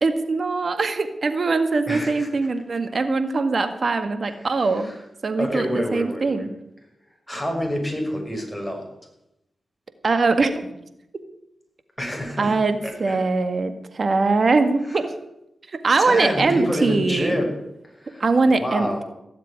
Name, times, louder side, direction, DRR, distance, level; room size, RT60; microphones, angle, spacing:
voice 1, 0.0-4.9 5.2-6.5 10.0-10.7 12.4-15.1 15.8-17.3 18.2-19.0, right 3 dB, 60° right, 9 dB, 1.9 m, -22 dB
voice 2, 1.9-2.3 4.2-5.0 5.4-6.5 7.3-8.8 12.0-12.6 12.8-13.2 14.8-15.0 16.0-17.5 17.8-19.0, equal, 10° left, 1 dB, 6.4 m, -28 dB
17.0 x 7.5 x 9.8 m, 0.84 s
cardioid pair, 50°, 0 cm